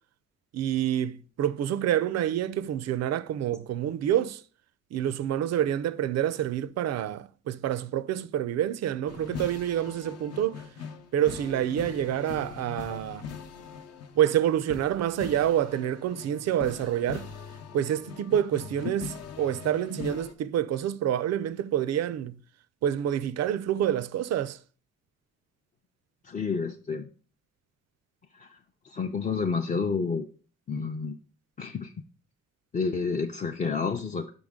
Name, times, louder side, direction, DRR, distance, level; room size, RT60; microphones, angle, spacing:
voice 1, 0.5-4.4 4.9-10.6 11.1-13.3 14.2-17.3 17.7-22.4 22.8-24.6, right 11 dB, 60° right, 0.5 m, -27 dB
sound 1, 9.1-20.3, left 6 dB, 55° left, 0.8 m, -41 dB
voice 2, 26.2-27.1 28.4-28.5 28.8-30.2 30.7-31.1 31.6-31.9 32.7-34.3, left 5 dB, 25° left, 0.5 m, -29 dB
5.7 x 5.2 x 3.6 m
cardioid pair, 90°, 30 cm